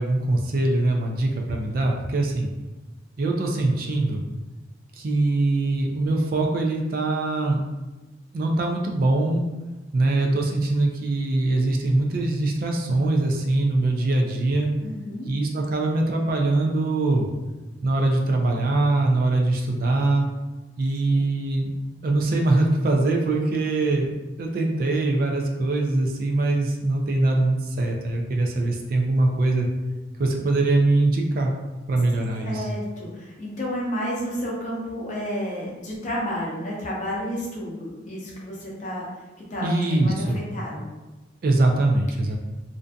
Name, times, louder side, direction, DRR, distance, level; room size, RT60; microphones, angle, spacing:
voice 1, 0.0-2.5 3.2-4.2 5.0-7.6 8.3-9.4 9.9-14.7 15.3-17.3 17.8-20.3 20.8-21.7 22.0-24.1 24.4-29.7 30.2-31.5 31.9-32.7 39.6-40.4 41.4-42.4, right 2 dB, 50° right, 1 dB, 0.3 m, -22 dB
voice 2, 14.8-15.3 21.1-21.3 32.4-39.0 39.5-40.9, equal, 40° left, -4 dB, 0.6 m, -31 dB
2.5 x 2.5 x 2.2 m, 1.1 s
head